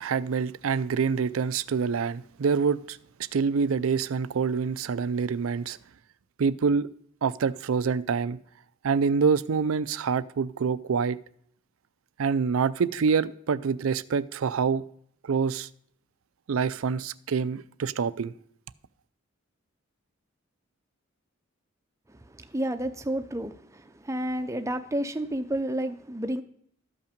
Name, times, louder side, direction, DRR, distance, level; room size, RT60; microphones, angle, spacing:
voice 1, 0.0-3.0 3.3-5.8 6.4-6.9 7.2-8.4 8.8-11.2 12.2-14.8 15.2-15.7 16.5-18.3, right 5 dB, 85° right, 0.4 m, -26 dB
voice 2, 22.1-26.4, right 1 dB, 15° right, 0.6 m, -31 dB
12.5 x 5.6 x 5.1 m
head